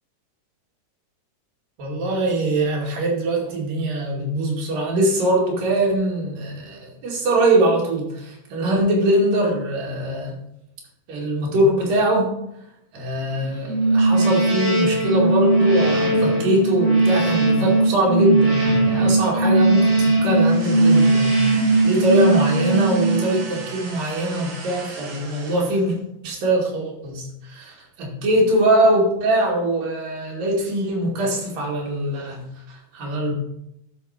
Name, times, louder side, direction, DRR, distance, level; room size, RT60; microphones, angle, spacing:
voice 1, 1.8-10.4 11.1-12.3 12.9-26.0 26.2-33.3, right 1 dB, 85° right, -3 dB, 4.1 m, -22 dB
sound 1, 13.7-23.6, right 2 dB, 35° right, 4.4 m, -18 dB
sound 2, 20.4-26.0, right 3 dB, 65° right, 3.5 m, -37 dB
12.0 x 5.5 x 5.1 m, 0.84 s
omnidirectional pair, 3.8 m